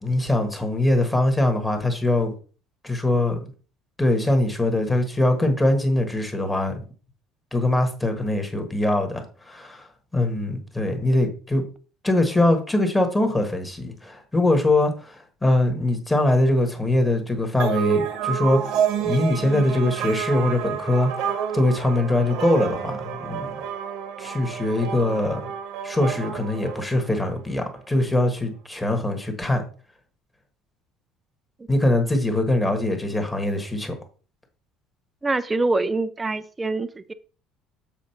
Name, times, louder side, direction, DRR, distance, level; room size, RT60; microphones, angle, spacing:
voice 1, 0.0-2.3 2.8-3.5 4.0-6.7 7.5-11.6 12.0-18.7 19.0-23.6 24.2-25.5 25.8-29.6 31.7-34.0, left 1 dB, 10° left, 1.3 m, -22 dB
sound 1, 17.6-27.4, right 8 dB, 70° right, 1.1 m, -29 dB
voice 2, 35.2-37.1, right 2 dB, 15° right, 0.4 m, -25 dB
7.2 x 3.7 x 5.7 m
cardioid pair, 155°, 0 cm